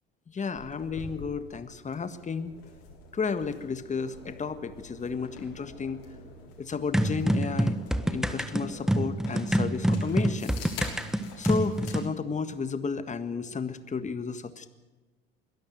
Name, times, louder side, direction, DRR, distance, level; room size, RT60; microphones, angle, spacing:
voice 1, 0.3-2.5 3.1-6.0 6.6-7.7 8.1-10.6 11.4-14.7, left 5 dB, 25° left, 11 dB, 1.7 m, -32 dB
sound 1, 0.6-12.0, left 4 dB, 65° left, 6.4 m, -46 dB
sound 2, 6.9-12.1, right 1 dB, ahead, 1.3 m, -26 dB
22.0 x 13.0 x 9.4 m, 1.2 s
hypercardioid pair, 70°, 29 cm